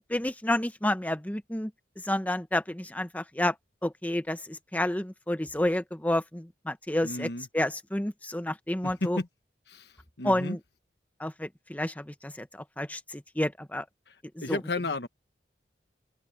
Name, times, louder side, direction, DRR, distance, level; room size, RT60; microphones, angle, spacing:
voice 1, 0.1-1.7 2.0-3.5 3.8-9.2 10.2-10.6 11.2-13.9 14.4-14.6, left 1 dB, 10° left, 0.9 m, -30 dB
voice 2, 7.0-7.5 8.8-9.3 9.7-9.9 10.2-10.6 14.4-15.1, left 2 dB, 60° left, 1.3 m, -32 dB
open air
head